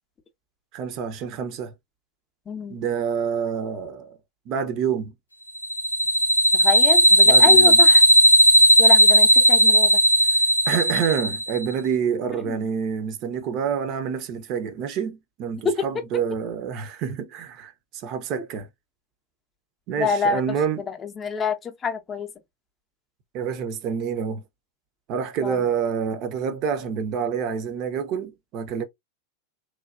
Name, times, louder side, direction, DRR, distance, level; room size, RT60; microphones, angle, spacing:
voice 1, 0.7-1.7 2.7-4.2 4.5-5.1 7.2-7.8 10.3-10.4 10.7-18.7 19.9-20.8 23.3-24.4 25.1-28.8, right 7 dB, 40° right, 0.5 m, -27 dB
voice 2, 2.5-2.8 6.5-8.1 8.8-10.0 12.4-12.7 15.6-15.8 20.0-22.3 25.4-25.6, left 5 dB, 20° left, 0.5 m, -27 dB
sound 1, 5.6-11.6, right 1 dB, 80° left, 0.5 m, -15 dB
3.0 x 2.2 x 2.3 m
figure-of-eight pair, 90°, 0 cm